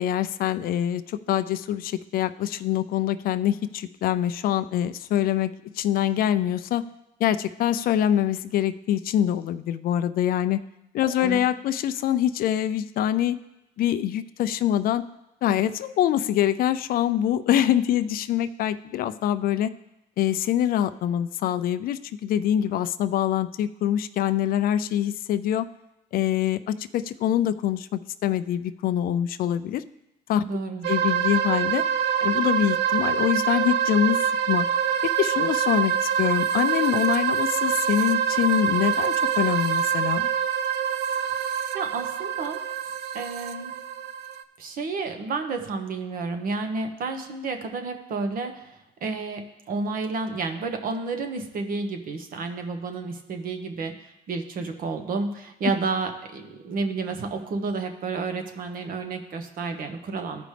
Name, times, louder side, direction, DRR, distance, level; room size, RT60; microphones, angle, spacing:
voice 1, 0.0-6.8 7.2-10.6 10.9-13.4 13.8-15.0 15.4-19.7 20.2-25.7 26.1-29.8 30.3-30.4 30.9-31.8 32.2-34.2 34.5-34.7 35.0-40.3, left 11 dB, 60° left, 13 dB, 0.4 m, -24 dB
voice 2, 11.1-11.4 30.4-30.9 41.7-42.6 43.1-43.7 44.6-60.4, right 4 dB, 55° right, 6 dB, 1.1 m, -31 dB
sound 1, 30.8-44.4, right 8 dB, 80° right, 0.5 m, -25 dB
14.5 x 5.0 x 3.3 m, 0.93 s
cardioid pair, 110°, 17 cm